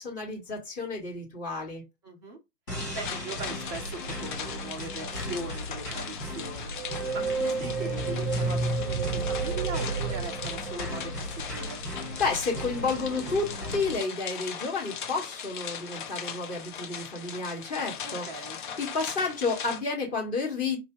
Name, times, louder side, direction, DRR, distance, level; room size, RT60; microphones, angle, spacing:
voice 1, 0.0-1.8 12.2-18.3 18.8-20.8, left 4 dB, 15° left, 1.4 m, -31 dB
voice 2, 2.0-2.4 2.9-6.7 7.1-11.8 18.0-18.6, right 2 dB, 10° right, 0.6 m, -40 dB
sound 1, 2.7-14.0, equal, 85° left, 3.2 m, -37 dB
sound 2, 2.8-19.8, left 7 dB, 30° left, 0.7 m, -39 dB
sound 3, 6.7-11.4, right 4 dB, 50° right, 0.6 m, -31 dB
4.9 x 2.7 x 3.8 m
figure-of-eight pair, 125°, 47 cm